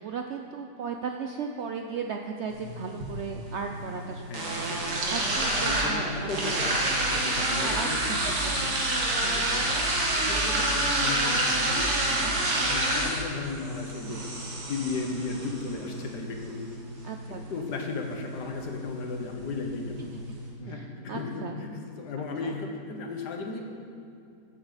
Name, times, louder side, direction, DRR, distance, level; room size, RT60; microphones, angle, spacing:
voice 1, 0.0-6.7 7.6-8.3 8.6-8.7 9.2-9.4 17.0-17.7 20.0-20.1 20.6-21.6 22.2-22.6, right 5 dB, 90° right, 4 dB, 0.6 m, -36 dB
sound 1, 2.5-20.5, right 1 dB, 70° right, 2.2 m, -29 dB
voice 2, 4.3-4.9 5.5-8.3 8.6-8.8 9.4-9.8 10.1-14.2 14.7-16.7 17.3-20.0 20.6-23.8, left 4 dB, 75° left, 3 dB, 1.7 m, -35 dB
14.0 x 8.8 x 4.1 m, 2.4 s
omnidirectional pair, 1.8 m